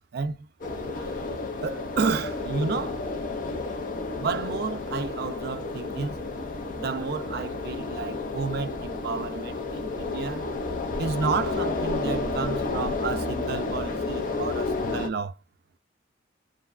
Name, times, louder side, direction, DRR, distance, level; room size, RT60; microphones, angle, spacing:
voice 1, 0.1-0.5 0.9-1.2 1.6-3.0 4.2-6.2 6.8-10.5 11.0-15.4, right 5 dB, 50° right, 0.3 m, -31 dB
sound 1, 0.6-15.1, left 3 dB, 40° left, 0.4 m, -31 dB
2.6 x 2.2 x 2.4 m
head